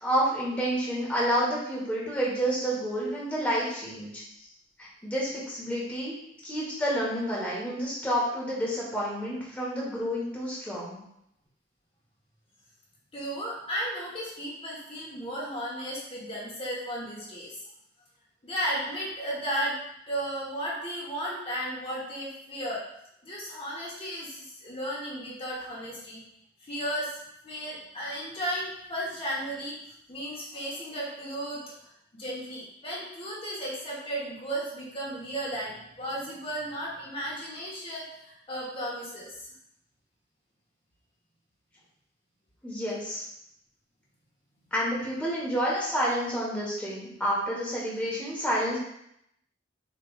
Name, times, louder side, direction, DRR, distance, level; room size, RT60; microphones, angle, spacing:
voice 1, 0.0-4.2 4.8-6.1 6.4-11.0 42.6-43.2 44.7-48.8, equal, 10° left, -6 dB, 1.2 m, -29 dB
voice 2, 13.1-17.6 18.4-19.8 20.1-22.8 23.2-26.2 26.6-27.2 27.4-29.8 30.1-31.6 32.1-39.3, equal, 30° left, -5 dB, 1.1 m, -34 dB
6.7 x 3.3 x 2.4 m, 0.76 s
head